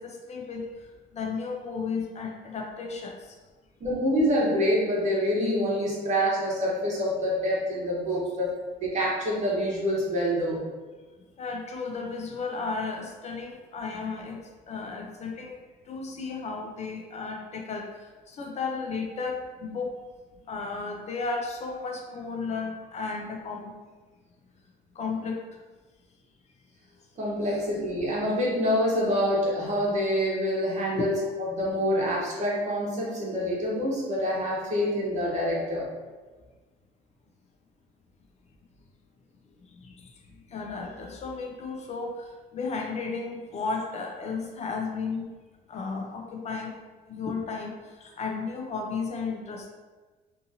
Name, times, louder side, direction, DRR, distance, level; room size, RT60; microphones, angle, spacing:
voice 1, 0.0-3.4 11.4-14.4 14.7-19.9 20.5-23.7 24.9-25.6 30.9-31.1 39.7-40.2 40.5-45.3 45.7-46.7 47.1-49.7, left 4 dB, 40° left, 0 dB, 0.5 m, -34 dB
voice 2, 3.8-8.5 8.8-10.6 27.2-35.9, equal, 45° right, -4 dB, 1.0 m, -26 dB
2.7 x 2.6 x 2.6 m, 1.3 s
cardioid pair, 110°, 17 cm